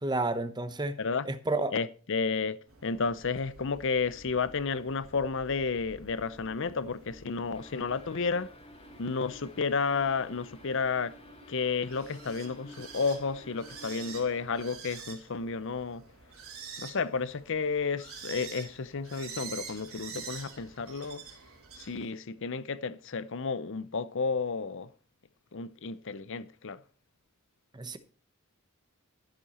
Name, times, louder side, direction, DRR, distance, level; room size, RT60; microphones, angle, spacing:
voice 1, 0.0-1.0 1.2-1.7 27.7-28.0, right 2 dB, 20° right, 1.0 m, -30 dB
voice 2, 1.7-8.5 9.0-11.1 11.5-16.0 16.8-21.2 21.8-24.9 25.5-26.8, left 4 dB, 60° left, 0.7 m, -32 dB
sound 1, 2.7-22.1, right 5 dB, 70° right, 4.0 m, -48 dB
sound 2, 7.5-14.5, left 1 dB, 25° left, 1.9 m, -53 dB
14.5 x 7.6 x 4.3 m
head